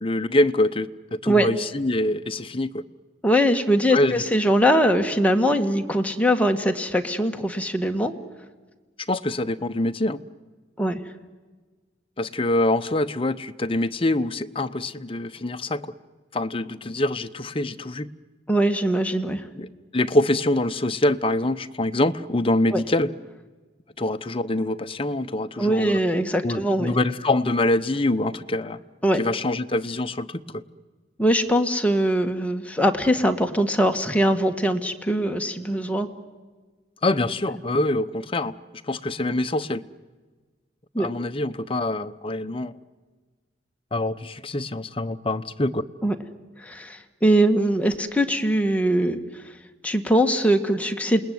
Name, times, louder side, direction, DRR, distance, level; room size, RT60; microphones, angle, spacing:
voice 1, 0.0-2.8 3.9-4.3 9.1-10.2 12.2-15.9 16.3-18.1 19.5-19.7 19.9-23.1 24.0-26.0 26.4-28.8 29.2-30.6 37.0-38.5 38.9-39.8 41.0-42.7 43.9-45.8, left 1 dB, 30° left, 0.9 m, -25 dB
voice 2, 3.2-8.1 10.8-11.0 18.5-19.4 22.7-22.8 25.6-26.9 29.0-29.2 31.2-36.1 41.0-41.1 46.0-46.2 46.6-49.2 49.8-51.2, equal, 10° left, 1.7 m, -21 dB
28.5 x 20.0 x 9.5 m
head